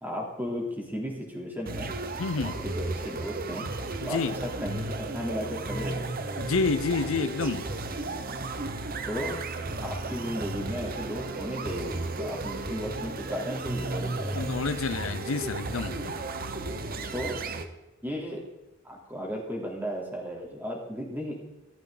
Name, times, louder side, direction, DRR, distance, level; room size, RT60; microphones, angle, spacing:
voice 1, 0.0-1.9 2.4-3.6 4.0-6.2 9.0-9.4 9.8-14.5 17.1-17.4 18.0-18.4 18.8-21.4, equal, 10° right, -2 dB, 3.2 m, -35 dB
sound 1, 1.7-17.7, right 2 dB, 45° right, 0.9 m, -34 dB
voice 2, 2.2-2.6 4.0-4.4 6.4-7.7 14.3-16.1, left 4 dB, 75° left, 12 dB, 0.6 m, -29 dB
15.5 x 13.0 x 3.9 m, 1.1 s
head